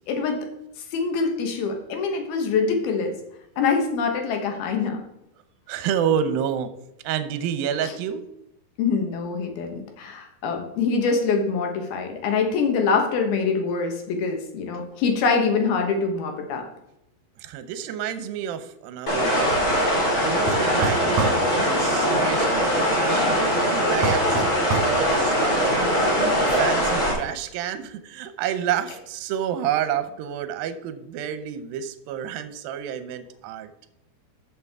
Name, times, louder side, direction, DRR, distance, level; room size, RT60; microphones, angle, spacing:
voice 1, 0.1-0.5 0.9-3.1 3.6-5.0 7.8-7.9 8.8-16.7, left 5 dB, 75° left, 4 dB, 3.1 m, -24 dB
voice 2, 5.7-6.7 7.0-8.2 17.4-19.6 20.2-25.9 26.4-33.7, right 9 dB, 75° right, 10 dB, 2.4 m, -29 dB
sound 1, 19.1-27.1, equal, 25° left, 2.5 m, -22 dB
sound 2, 20.5-21.4 24.0-25.0, right 4 dB, 55° right, 2.2 m, -26 dB
13.5 x 6.3 x 3.6 m, 0.84 s
omnidirectional pair, 4.6 m